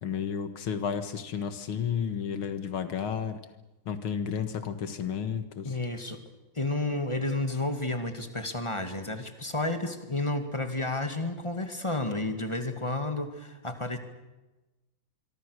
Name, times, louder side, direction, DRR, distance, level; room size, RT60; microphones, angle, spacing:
voice 1, 0.0-3.4 3.9-5.7, left 7 dB, 80° left, 10 dB, 2.5 m, -32 dB
voice 2, 5.6-6.2 6.5-14.0, left 2 dB, 15° left, 7 dB, 2.1 m, -31 dB
25.0 x 24.0 x 6.7 m, 1.1 s
omnidirectional pair, 2.3 m